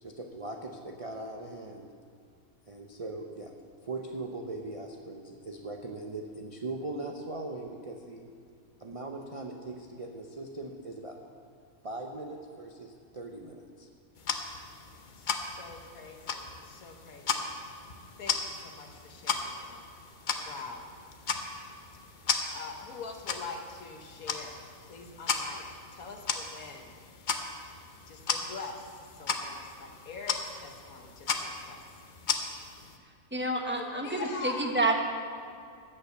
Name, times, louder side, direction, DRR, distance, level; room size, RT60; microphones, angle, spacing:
voice 1, 0.0-1.9 2.7-3.5 3.8-8.2 8.8-11.2 11.8-13.9, right 2 dB, 40° right, 2 dB, 0.5 m, -40 dB
sound 1, 14.2-33.0, left 5 dB, 45° left, 0.7 m, -36 dB
voice 2, 15.1-17.5 18.2-19.8 20.4-20.9 22.5-25.6 25.9-26.9 28.1-31.8 33.7-34.8, left 4 dB, 75° left, 4 dB, 1.5 m, -44 dB
voice 3, 33.3-35.0, right 2 dB, 10° right, 2 dB, 0.9 m, -29 dB
13.0 x 5.7 x 7.9 m, 2.3 s
omnidirectional pair, 1.5 m